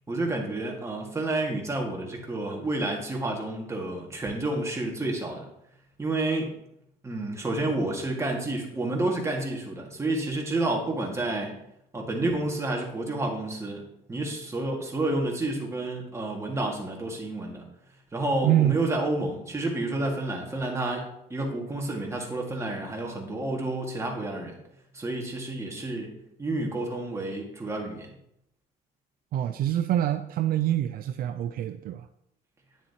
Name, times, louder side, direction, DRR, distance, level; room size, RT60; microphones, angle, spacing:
voice 1, 0.1-5.4 6.0-6.5 7.0-11.5 11.9-13.8 14.1-17.6 18.1-24.6 24.9-26.1 26.4-28.1, right 2 dB, 15° right, 0 dB, 1.9 m, -30 dB
voice 2, 18.4-18.8 29.3-32.1, right 12 dB, 60° right, 9 dB, 0.4 m, -25 dB
9.5 x 7.3 x 2.9 m, 0.78 s
cardioid pair, 110°, 17 cm